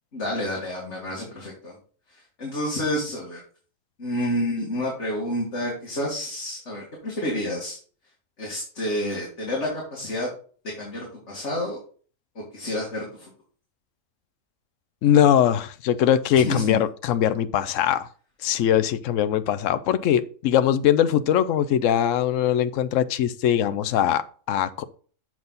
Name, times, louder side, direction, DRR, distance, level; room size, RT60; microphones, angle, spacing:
voice 1, 0.1-1.7 2.1-3.4 4.0-7.8 8.4-10.3 10.8-11.8 12.4-13.3 16.3-16.8, left 1 dB, 60° left, -3 dB, 2.4 m, -29 dB
voice 2, 15.0-18.1 18.4-24.8, left 10 dB, 80° left, 12 dB, 1.0 m, -21 dB
7.4 x 6.0 x 4.0 m, 0.42 s
omnidirectional pair, 1.3 m